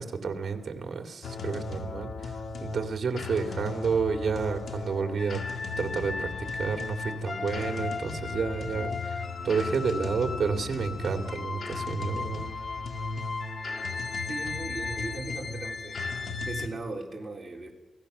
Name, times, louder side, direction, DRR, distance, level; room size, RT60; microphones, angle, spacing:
voice 1, 0.0-2.3 2.6-5.4 5.8-12.4, right 5 dB, 55° right, 5 dB, 2.3 m, -30 dB
sound 1, 1.2-16.7, left 4 dB, 60° left, 2.3 m, -35 dB
voice 2, 14.3-16.0 16.4-17.7, right 2 dB, 20° right, -1 dB, 4.0 m, -38 dB
28.0 x 17.5 x 6.7 m, 1.0 s
wide cardioid pair, 125°, 0 cm